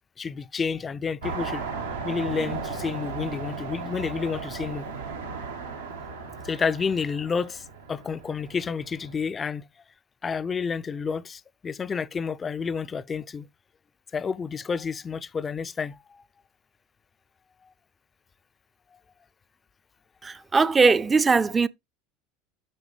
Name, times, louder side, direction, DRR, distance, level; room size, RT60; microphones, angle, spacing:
voice 1, 0.2-1.6 2.0-4.8 6.4-7.6 7.9-9.6 10.2-13.5 14.1-16.0, left 5 dB, 25° left, 0.4 m, -30 dB
sound 1, 1.2-9.1, right 4 dB, 90° right, 1.8 m, -36 dB
voice 2, 20.2-21.7, right 4 dB, 20° right, 0.5 m, -20 dB
8.5 x 6.3 x 3.2 m
hypercardioid pair, 75°, 0 cm